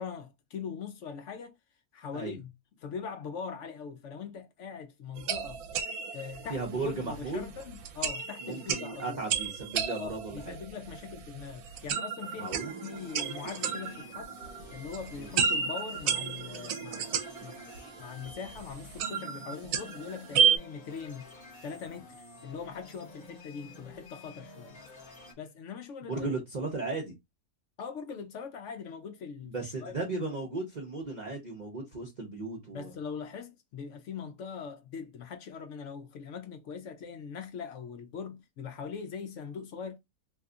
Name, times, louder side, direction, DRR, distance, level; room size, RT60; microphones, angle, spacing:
voice 1, 0.0-1.6 1.9-2.5 2.8-5.6 6.1-9.2 10.0-12.6 12.8-14.3 14.7-21.3 21.6-24.8 25.4-26.3 27.8-29.9 32.7-40.0, left 6 dB, 65° left, 0.7 m, -41 dB
sound 1, 5.2-20.6, right 7 dB, 80° right, 1.1 m, -33 dB
voice 2, 6.5-7.5 8.4-10.6 12.4-12.7 15.2-15.3 26.0-27.1 29.4-32.9, right 3 dB, 40° right, 0.6 m, -36 dB
sound 2, 12.2-25.3, left 2 dB, 35° left, 0.9 m, -51 dB
2.8 x 2.3 x 3.7 m
omnidirectional pair, 1.6 m